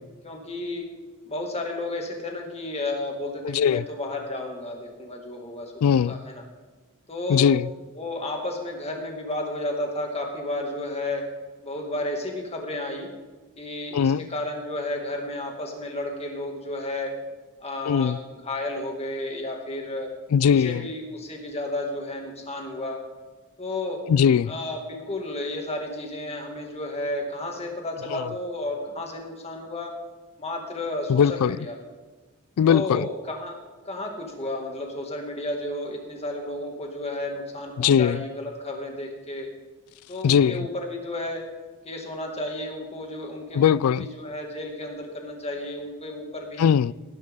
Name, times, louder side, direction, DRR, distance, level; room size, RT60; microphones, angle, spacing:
voice 1, 0.2-0.9 1.3-6.4 7.1-7.5 8.0-11.3 11.6-13.1 13.6-17.1 17.6-20.1 20.6-23.0 23.6-24.0 24.5-30.0 30.4-31.8 32.6-33.6 33.9-39.5 40.1-41.5 41.8-46.7, left 1 dB, 30° left, 2.2 m, -32 dB
voice 2, 3.4-3.8 5.8-6.2 7.3-7.7 13.9-14.2 17.9-18.2 20.3-20.9 24.1-24.5 28.1-28.3 31.1-31.6 32.6-33.1 37.8-38.2 40.2-40.7 43.5-44.1 46.6-46.9, left 8 dB, 70° left, 0.3 m, -20 dB
18.0 x 10.5 x 3.7 m
head